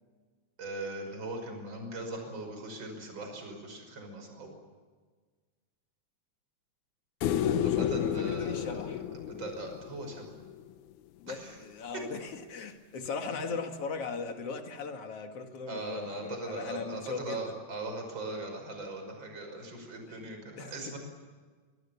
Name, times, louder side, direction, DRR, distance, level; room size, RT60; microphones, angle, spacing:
voice 1, 0.6-4.5 7.6-8.8 9.2-10.3 11.3-11.5 15.7-21.0, right 2 dB, 25° right, 6.1 m, -40 dB
sound 1, 7.2-10.5 13.1-13.2, left 10 dB, 85° left, 1.7 m, -31 dB
voice 2, 7.4-9.0 11.2-17.6 20.6-21.0, left 4 dB, 45° left, 2.4 m, -39 dB
26.5 x 22.5 x 7.1 m
omnidirectional pair, 4.7 m